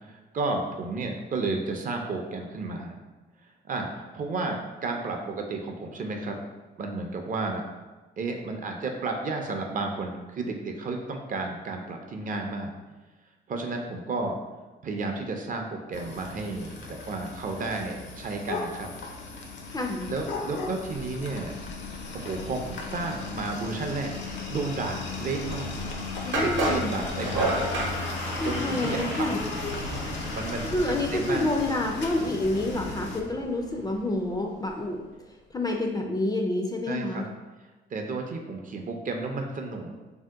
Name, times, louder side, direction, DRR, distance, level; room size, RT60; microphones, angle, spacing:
voice 1, 0.1-3.0 3.7-6.4 6.8-7.6 8.2-12.7 13.5-14.4 14.8-18.9 20.1-21.5 22.1-24.1 24.5-25.8 26.3-27.6 28.4-29.5 30.3-31.5 36.9-37.3 37.9-39.9, right 3 dB, 40° right, 3 dB, 0.5 m, -32 dB
sound 1, 15.9-33.2, left 4 dB, 65° left, 0.5 m, -38 dB
voice 2, 19.7-20.1 26.2-27.0 28.4-29.4 30.6-35.0 35.5-37.3, left 2 dB, 20° left, 2 dB, 0.3 m, -28 dB
sound 2, 20.0-34.8 35.1-35.2, left 1 dB, 90° left, 1.2 m, -38 dB
sound 3, 26.3-27.9, right 2 dB, 75° right, 0.8 m, -27 dB
2.7 x 2.1 x 3.4 m, 1.2 s
cardioid pair, 90°, 20 cm